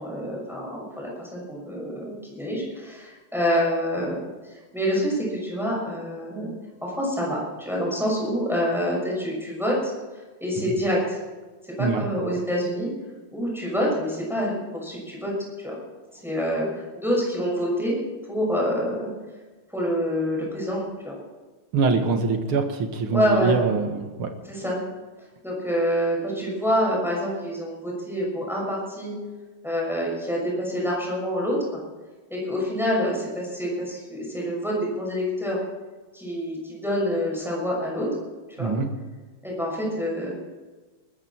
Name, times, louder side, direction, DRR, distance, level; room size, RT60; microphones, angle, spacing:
voice 1, 0.0-6.5 6.8-9.9 10.4-11.2 11.6-12.9 13.3-15.3 15.6-15.8 16.2-18.0 18.3-19.1 19.7-21.2 23.1-23.6 24.5-24.8 25.4-29.1 29.6-31.8 32.3-35.6 36.1-38.1 38.6-38.7 39.4-40.3, equal, ahead, -3 dB, 6.2 m, -27 dB
voice 2, 21.7-24.3 38.6-38.9, right 4 dB, 80° right, 6 dB, 2.5 m, -24 dB
20.5 x 13.5 x 4.5 m, 1.3 s
omnidirectional pair, 2.3 m